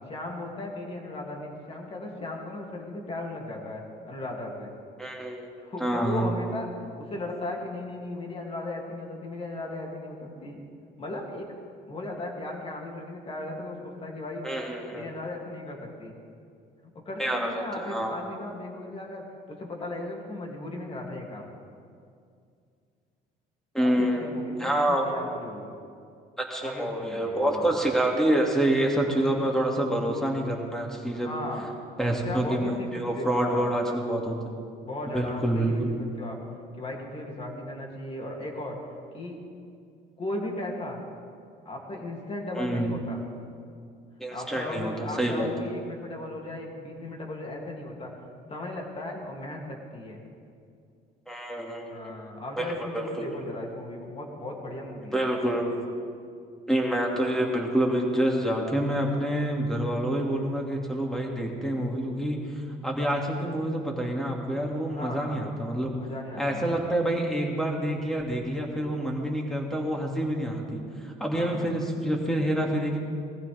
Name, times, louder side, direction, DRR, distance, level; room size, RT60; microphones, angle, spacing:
voice 1, 0.1-4.7 5.6-10.6 11.0-14.5 14.9-16.2 16.9-21.5 23.8-25.7 26.6-27.7 31.1-31.7 32.1-33.8 34.8-36.4 36.8-38.8 39.1-39.4 40.2-41.0 41.6-43.2 44.3-48.1 48.5-50.2 51.9-55.3 64.9-65.5 66.0-66.8 71.3-71.7, left 1 dB, 35° left, 0 dB, 2.8 m, -37 dB
voice 2, 5.0-5.5 5.8-6.3 14.4-15.1 17.2-18.1 23.7-24.3 24.6-25.0 26.4-31.3 32.0-34.4 35.1-36.0 42.6-42.9 44.2-45.5 51.3-52.1 52.6-53.4 55.1-55.7 56.7-65.9 66.4-73.0, right 1 dB, 5° left, -1 dB, 2.5 m, -27 dB
20.5 x 14.5 x 3.6 m, 2.3 s
cardioid pair, 110°, 17 cm